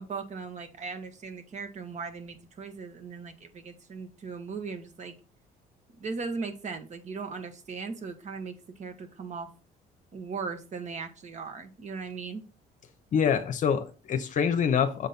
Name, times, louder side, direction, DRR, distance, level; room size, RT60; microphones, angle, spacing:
voice 1, 0.0-5.1 6.0-9.5 10.1-12.4, right 4 dB, 45° right, 7 dB, 1.6 m, -38 dB
voice 2, 13.1-15.1, left 7 dB, 50° left, 8 dB, 0.9 m, -25 dB
7.4 x 4.0 x 4.1 m, 0.34 s
cardioid pair, 110°, 17 cm